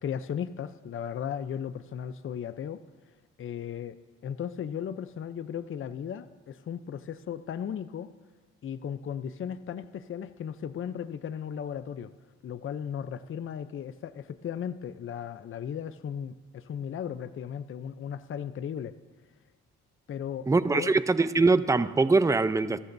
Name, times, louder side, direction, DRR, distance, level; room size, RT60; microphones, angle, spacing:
voice 1, 0.0-2.8 3.4-4.0 4.2-8.1 8.6-12.1 12.4-18.9 20.1-20.5 20.7-20.9, left 8 dB, 45° left, 13 dB, 0.6 m, -36 dB
voice 2, 20.5-22.8, right 3 dB, 10° right, 13 dB, 0.6 m, -23 dB
28.0 x 13.0 x 2.7 m, 1.3 s
cardioid pair, 90°, 30 cm